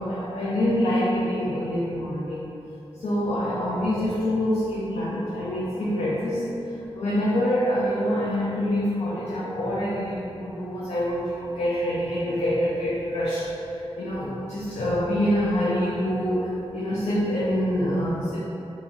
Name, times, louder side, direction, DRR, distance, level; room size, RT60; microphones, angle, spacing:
voice 1, 0.0-2.4 3.0-6.5 6.9-18.4, equal, 85° left, -7 dB, 0.5 m, -26 dB
3.0 x 2.8 x 3.6 m, 2.8 s
wide cardioid pair, 105°, 11 cm